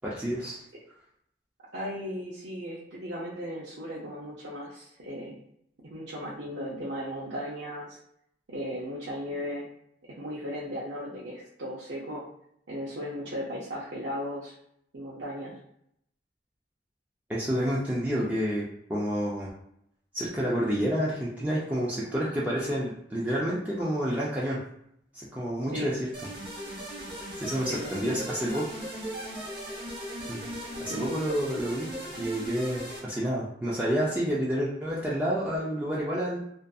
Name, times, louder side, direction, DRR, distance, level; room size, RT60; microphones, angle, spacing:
voice 1, 0.0-0.6 17.3-19.5 20.1-24.6 25.1-26.0 27.3-28.7 30.3-30.4 30.8-31.9 32.2-36.4, equal, 10° right, -7 dB, 0.4 m, -29 dB
voice 2, 1.7-5.4 5.9-8.0 8.5-9.7 10.2-12.2 12.7-14.5 14.9-15.6 25.7-25.9 27.7-28.2 30.9-31.2, equal, 80° right, -7 dB, 0.6 m, -36 dB
sound 1, 26.1-33.0, right 1 dB, 30° right, 0.7 m, -38 dB
2.5 x 2.5 x 2.3 m, 0.74 s
head